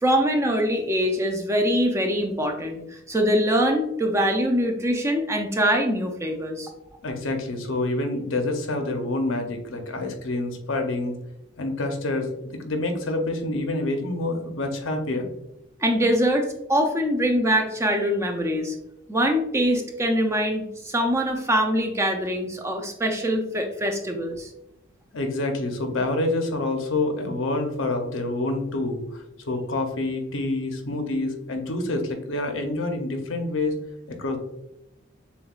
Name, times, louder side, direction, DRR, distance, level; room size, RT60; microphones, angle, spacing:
voice 1, 0.0-6.7 15.8-18.7 19.1-24.5, equal, 15° right, 3 dB, 0.4 m, -23 dB
voice 2, 7.0-11.1 11.6-15.3 25.1-33.7 34.1-34.4, left 2 dB, 75° left, 4 dB, 0.7 m, -27 dB
6.9 x 2.3 x 2.4 m, 0.84 s
head